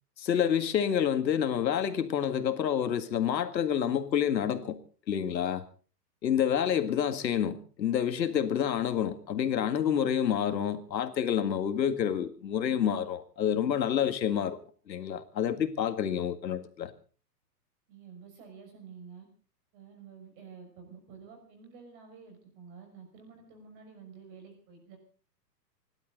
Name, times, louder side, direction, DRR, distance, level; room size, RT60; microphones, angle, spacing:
voice 1, 0.2-4.8 5.1-5.6 6.2-14.6 14.9-16.9, left 9 dB, 90° left, 9 dB, 2.0 m, -28 dB
voice 2, 17.9-19.3 19.7-25.0, right 6 dB, 30° right, 4 dB, 5.9 m, -50 dB
29.5 x 12.0 x 3.9 m, 0.39 s
hypercardioid pair, 170°, 50 cm